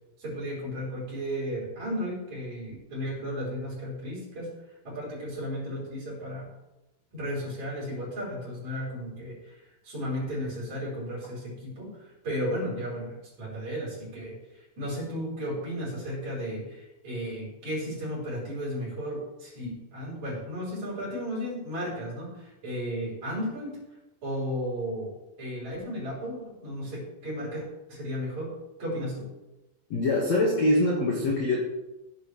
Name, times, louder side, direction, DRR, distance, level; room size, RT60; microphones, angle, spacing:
voice 1, 0.2-4.5 4.8-6.5 7.1-23.8 24.2-25.1 25.4-27.6 27.9-29.3, equal, 35° right, -6 dB, 6.3 m, -34 dB
voice 2, 29.9-31.6, left 1 dB, 55° left, -2 dB, 2.0 m, -24 dB
16.5 x 10.5 x 3.3 m, 0.98 s
omnidirectional pair, 5.5 m